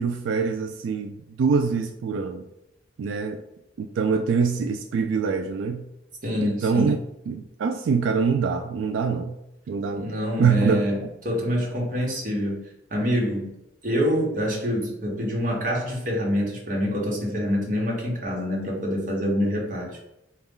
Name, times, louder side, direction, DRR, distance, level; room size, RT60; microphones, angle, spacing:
voice 1, 0.0-2.4 3.0-3.4 3.8-5.8 6.4-7.0 7.3-9.4 9.7-10.1 10.4-10.8, right 5 dB, 90° right, 6 dB, 0.3 m, -24 dB
voice 2, 6.2-7.0 9.9-11.0 11.2-13.5 13.8-20.1, equal, 45° right, -2 dB, 1.1 m, -26 dB
4.0 x 2.3 x 3.6 m, 0.86 s
head